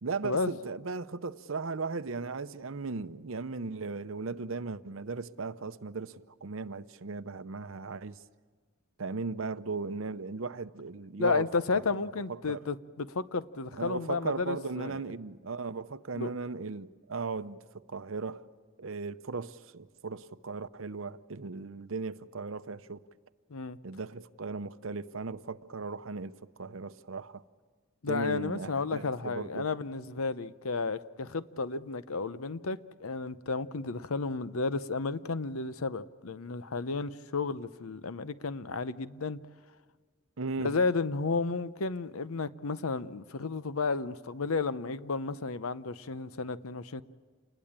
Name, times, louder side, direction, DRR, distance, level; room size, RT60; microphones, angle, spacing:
voice 1, 0.0-8.2 9.0-11.5 11.7-11.8 12.4-12.6 13.8-17.6 17.9-18.4 18.8-23.0 23.8-27.4 28.1-29.7 40.4-40.7, right 4 dB, 70° right, 0.7 m, -37 dB
voice 2, 11.2-15.0 16.1-16.3 23.5-23.8 28.0-39.4 40.6-47.0, left 4 dB, 85° left, 0.8 m, -32 dB
28.5 x 20.5 x 8.9 m
head